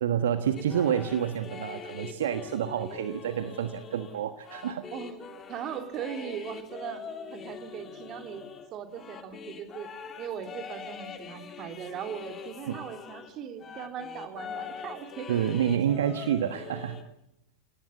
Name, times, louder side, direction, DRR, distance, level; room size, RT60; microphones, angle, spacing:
voice 1, 0.0-4.9 12.7-12.8 15.3-17.0, right 9 dB, 60° right, 9 dB, 1.3 m, -28 dB
sound 1, 0.6-13.3 13.6-17.0, left 6 dB, 25° left, 3.2 m, -43 dB
voice 2, 5.5-7.0 7.3-8.5 8.7-9.9 10.2-15.4, right 8 dB, 35° right, 6 dB, 3.0 m, -39 dB
30.0 x 18.5 x 8.3 m, 0.79 s
figure-of-eight pair, 90°, 0 cm